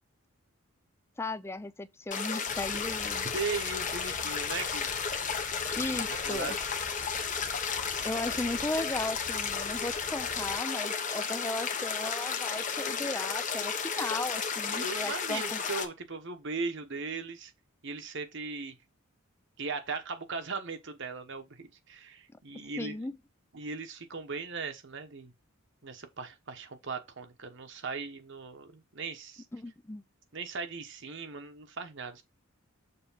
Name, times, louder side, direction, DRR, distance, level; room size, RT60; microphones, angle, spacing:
voice 1, 1.2-3.3 5.8-6.6 8.0-15.6 22.8-23.1 29.5-30.0, left 2 dB, 10° left, 0.4 m, -36 dB
sound 1, 2.1-15.9, left 6 dB, 35° left, 1.0 m, -33 dB
sound 2, 2.5-10.6, left 1 dB, 60° left, 1.8 m, -50 dB
voice 2, 3.3-4.9 5.9-6.6 14.7-17.5 17.8-18.8 19.6-22.9 23.5-25.3 25.8-29.4 30.3-32.2, right 4 dB, 55° right, 1.1 m, -38 dB
6.9 x 3.1 x 5.6 m
head